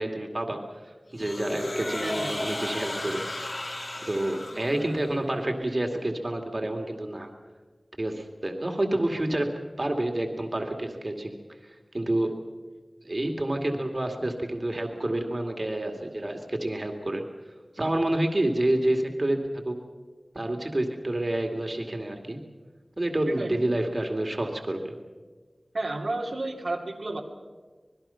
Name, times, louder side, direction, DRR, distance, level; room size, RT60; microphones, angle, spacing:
voice 1, 0.0-3.2 4.1-7.3 8.0-12.5 13.0-17.3 17.7-19.8 20.3-22.4 23.0-24.9, right 1 dB, 45° right, 3 dB, 2.4 m, -29 dB
sound 1, 1.2-5.2, left 1 dB, 60° left, 3.4 m, -34 dB
voice 2, 2.0-2.4 23.3-23.6 25.7-27.2, right 2 dB, 80° right, -1 dB, 2.5 m, -31 dB
26.0 x 20.5 x 5.8 m, 1.4 s
wide cardioid pair, 60°, 0 cm